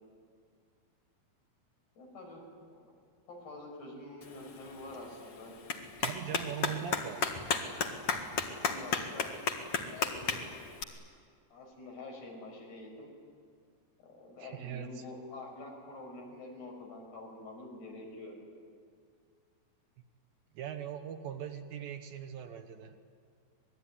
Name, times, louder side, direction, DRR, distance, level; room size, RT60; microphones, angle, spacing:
voice 1, 2.0-2.4 2.7-2.9 3.3-5.5 8.6-10.4 11.5-13.1 14.0-18.4, left 2 dB, 80° left, 0 dB, 7.7 m, -47 dB
Clapping, 4.2-10.8, left 5 dB, 45° left, 2.2 m, -35 dB
voice 2, 6.0-7.3 14.4-15.0 20.5-23.0, right 9 dB, 70° right, 6 dB, 2.8 m, -41 dB
27.5 x 20.5 x 10.0 m, 2.1 s
omnidirectional pair, 4.6 m